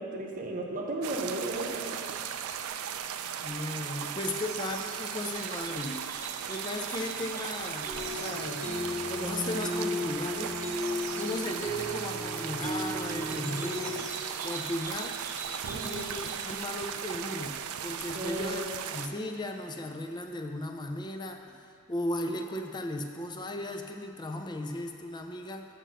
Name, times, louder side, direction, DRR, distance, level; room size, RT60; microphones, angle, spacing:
voice 1, 0.0-2.0 15.7-16.0 16.5-16.6 18.1-18.7, right 2 dB, 40° right, 0 dB, 0.9 m, -35 dB
sound 1, 1.0-19.1, right 8 dB, 70° right, 0.4 m, -37 dB
sound 2, 2.3-2.6 3.6-8.9 10.3-11.8 13.2-16.6, right 3 dB, 15° right, 1.0 m, -45 dB
voice 2, 3.4-6.0 6.5-8.7 9.1-10.6 11.2-14.0 14.4-15.2 15.8-18.6 18.9-21.4 21.9-25.7, left 1 dB, 20° left, 4 dB, 0.5 m, -36 dB
sound 3, 7.8-14.0, left 1 dB, 35° left, 1.3 m, -35 dB
6.7 x 6.0 x 6.2 m, 2.4 s
head